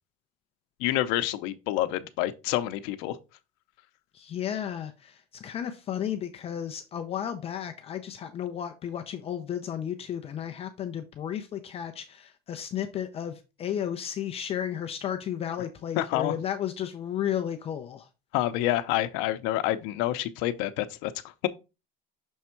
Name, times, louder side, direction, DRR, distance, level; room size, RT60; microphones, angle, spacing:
voice 1, 0.8-3.2 16.0-16.3 18.3-21.1, left 14 dB, 80° left, 0.7 m, -28 dB
voice 2, 4.1-18.1, left 9 dB, 30° left, 0.5 m, -33 dB
6.3 x 3.5 x 4.4 m
cardioid pair, 175°, 21 cm